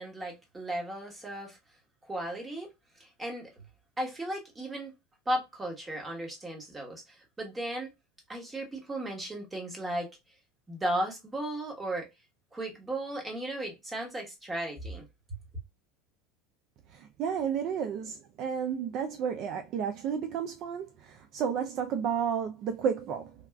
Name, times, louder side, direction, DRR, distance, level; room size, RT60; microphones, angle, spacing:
voice 1, 0.0-1.6 2.1-2.7 3.0-3.5 4.0-4.9 5.3-7.9 8.3-10.1 10.7-12.1 12.5-15.0, right 1 dB, 15° right, 1.2 m, -35 dB
voice 2, 16.9-23.3, right 7 dB, 50° right, 0.4 m, -32 dB
3.4 x 2.3 x 2.2 m
supercardioid pair, 125°, 0 cm